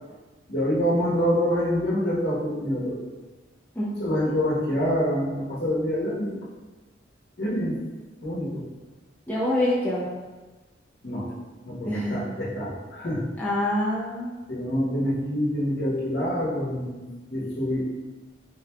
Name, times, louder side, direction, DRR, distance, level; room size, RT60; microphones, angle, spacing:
voice 1, 0.5-3.1 4.0-6.4 7.4-7.8 8.2-8.6 11.0-11.3 11.6-13.3 14.5-17.9, equal, 65° left, -6 dB, 1.0 m, -26 dB
voice 2, 3.7-4.4 9.3-10.1 11.8-12.2 13.4-14.3, left 1 dB, 10° left, -7 dB, 0.7 m, -26 dB
3.5 x 3.2 x 2.2 m, 1.2 s
head